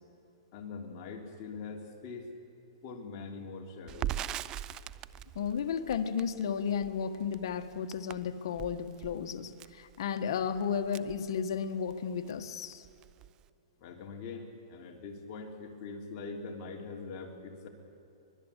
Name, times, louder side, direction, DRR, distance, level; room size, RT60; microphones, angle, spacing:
voice 1, 0.5-2.3 2.8-4.2 13.8-17.7, left 4 dB, 40° left, 1 dB, 3.3 m, -43 dB
Crackle, 3.9-11.9 12.3-12.4 12.7-13.5, right 12 dB, 25° right, 0.5 m, -41 dB
voice 2, 5.3-12.8, left 7 dB, 65° left, 7 dB, 1.6 m, -33 dB
24.5 x 20.5 x 8.4 m, 2.7 s
hypercardioid pair, 150°, 3 cm